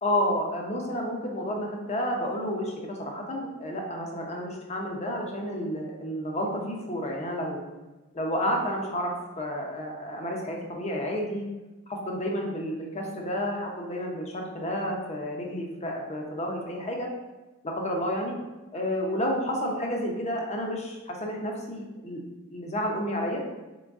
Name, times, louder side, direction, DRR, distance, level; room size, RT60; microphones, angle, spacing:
voice 1, 0.0-7.6 8.1-11.5 11.9-17.1 17.6-18.3 18.7-22.2 22.5-23.4, equal, 30° left, 0 dB, 0.8 m, -30 dB
3.9 x 3.7 x 3.6 m, 1.1 s
head